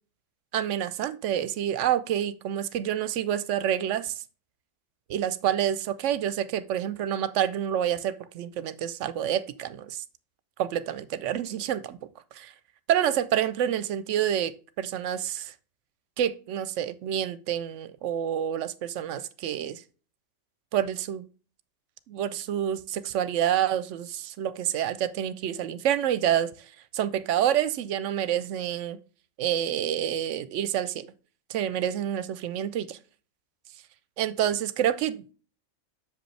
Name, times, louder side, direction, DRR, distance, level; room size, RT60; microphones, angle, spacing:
voice 1, 0.5-4.2 5.1-10.0 10.6-12.0 12.3-12.5 12.9-15.5 16.2-19.8 20.7-21.2 22.1-26.5 26.9-29.0 29.4-31.1 31.5-33.0 34.2-35.3, right 10 dB, 75° right, 0.9 m, -28 dB
6.8 x 5.2 x 3.2 m
omnidirectional pair, 1.3 m